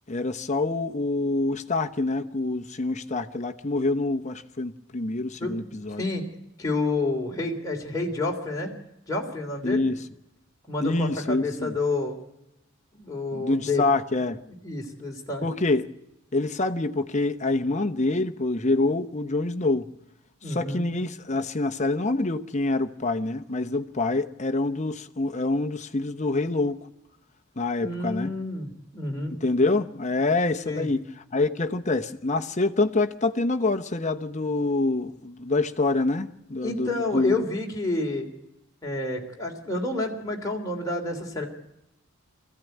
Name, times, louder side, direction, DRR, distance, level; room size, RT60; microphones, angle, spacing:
voice 1, 0.1-6.0 9.6-10.0 10.8-11.7 13.3-14.4 15.4-15.9 16.3-19.9 20.5-26.8 27.6-28.3 29.3-31.1 31.3-37.4, left 2 dB, 35° left, 0.9 m, -26 dB
voice 2, 6.6-8.7 9.1-9.9 10.7-12.2 13.0-13.9 14.6-15.4 20.4-20.9 27.8-29.4 30.6-30.9 36.6-38.3 38.8-41.5, left 2 dB, 15° left, 3.2 m, -29 dB
21.5 x 15.5 x 9.2 m
head